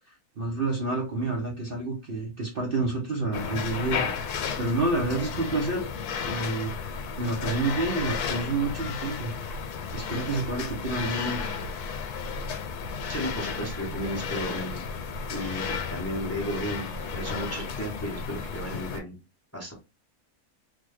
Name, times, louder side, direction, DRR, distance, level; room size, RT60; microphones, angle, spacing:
voice 1, 0.1-4.0 4.6-5.8 6.2-6.7 7.2-9.3 9.9-11.5, right 3 dB, 50° right, -1 dB, 0.7 m, -29 dB
sound 1, 3.3-19.0, left 6 dB, 90° left, 1.1 m, -33 dB
voice 2, 13.1-14.8 15.3-19.1 19.5-19.7, equal, 15° left, -1 dB, 0.6 m, -34 dB
3.2 x 2.2 x 3.1 m, 0.28 s
omnidirectional pair, 1.6 m